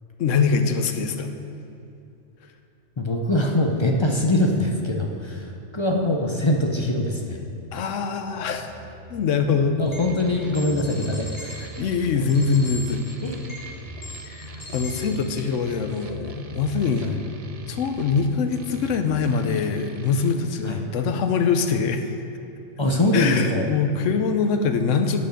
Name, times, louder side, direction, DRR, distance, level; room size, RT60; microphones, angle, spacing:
voice 1, 0.2-1.3 7.7-8.7 9.1-9.8 11.5-13.0 14.3-17.2 17.7-22.2 23.1-25.3, left 5 dB, 70° left, 7 dB, 1.0 m, -23 dB
voice 2, 3.0-7.4 9.8-11.7 12.2-12.3 13.2-13.4 17.0-17.1 20.7-20.8 22.8-23.7, left 1 dB, 45° left, 1 dB, 0.3 m, -23 dB
sound 1, 8.3-19.3, left 1 dB, 70° right, 1.9 m, -42 dB
sound 2, 9.8-10.0 10.5-11.6 12.3-13.6 14.0-15.4, left 2 dB, 30° left, 1.2 m, -39 dB
sound 3, 10.0-20.3, right 5 dB, 55° right, 0.4 m, -44 dB
8.9 x 5.3 x 6.3 m, 2.7 s
omnidirectional pair, 1.4 m